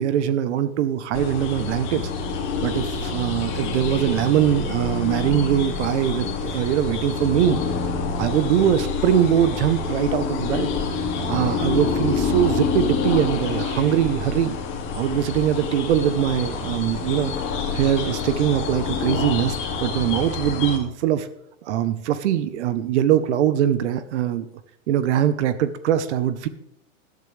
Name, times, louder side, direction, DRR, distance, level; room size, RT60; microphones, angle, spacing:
voice 1, 0.0-2.1 2.6-7.6 8.2-10.7 11.3-14.6 14.9-17.3 17.7-21.3 21.6-24.5 24.9-26.5, right 10 dB, 55° right, 13 dB, 1.0 m, -22 dB
sound 1, 1.1-20.8, left 5 dB, 30° left, 2.5 m, -27 dB
14.5 x 12.0 x 3.3 m, 0.72 s
supercardioid pair, 155°, 42 cm